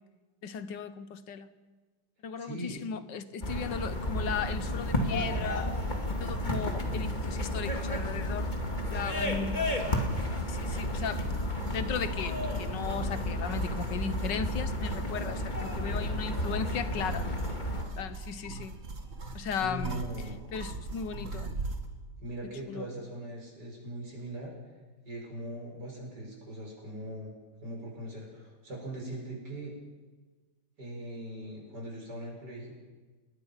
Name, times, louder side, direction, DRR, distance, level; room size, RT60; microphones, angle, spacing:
voice 1, 0.4-1.5 2.2-5.7 6.2-8.5 8.9-9.6 10.5-11.2 11.7-17.3 18.0-18.8 19.3-20.0 20.5-21.5 22.6-22.9, left 7 dB, 75° left, 13 dB, 1.7 m, -36 dB
voice 2, 2.4-2.8 19.5-20.4 22.2-24.5 25.1-27.3 27.6-29.7 30.8-32.7, right 1 dB, 65° right, -1 dB, 7.3 m, -40 dB
sound 1, 3.4-17.8, left 1 dB, 25° left, 2.4 m, -32 dB
sound 2, 10.5-21.9, right 3 dB, 45° right, 2.3 m, -42 dB
29.0 x 20.0 x 5.8 m, 1.3 s
omnidirectional pair, 1.9 m